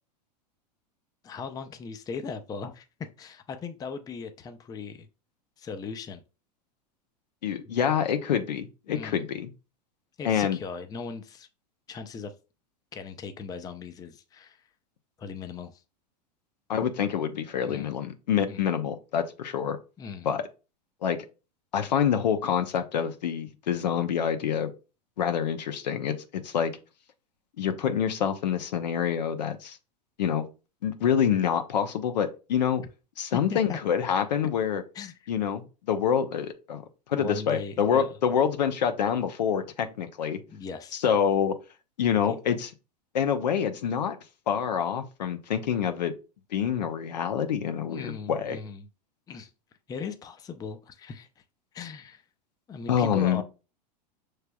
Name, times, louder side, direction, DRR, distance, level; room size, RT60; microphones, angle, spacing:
voice 1, 1.2-2.9 3.2-5.1 5.6-6.2 7.7-7.8 8.9-9.2 10.2-11.5 11.9-12.3 12.9-14.6 15.2-15.8 17.7-18.0 18.5-18.7 20.0-20.3 33.5-33.8 34.9-35.2 37.1-38.2 40.5-41.0 42.3-42.4 47.9-48.9 49.3-49.5 49.9-51.3 51.7-52.2 52.7-53.4, left 5 dB, 15° left, 0.5 m, -38 dB
voice 2, 7.4-9.5 10.2-10.6 16.7-19.8 20.2-20.4 21.0-21.2 21.7-24.7 25.2-26.7 27.6-29.8 30.2-30.5 30.8-32.8 33.2-34.8 35.3-36.8 37.1-40.4 40.9-41.5 42.0-42.7 43.1-44.2 44.5-46.1 46.5-48.6 52.9-53.4, left 8 dB, 80° left, 0.7 m, -26 dB
5.7 x 3.3 x 2.2 m
hypercardioid pair, 105°, 21 cm